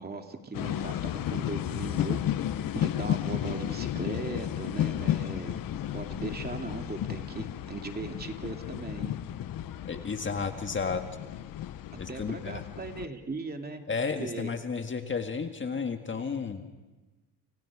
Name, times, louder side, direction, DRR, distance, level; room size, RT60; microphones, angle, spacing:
voice 1, 0.0-2.4 2.7-5.6 5.9-9.2 11.9-13.8 14.2-14.5, right 3 dB, 25° right, 4 dB, 2.6 m, -38 dB
sound 1, 0.5-13.1, left 11 dB, 60° left, 1.2 m, -33 dB
voice 2, 9.8-11.0 12.0-12.6 13.9-16.6, left 5 dB, 30° left, 6 dB, 1.8 m, -32 dB
29.5 x 29.0 x 4.9 m, 1.2 s
cardioid pair, 95°, 39 cm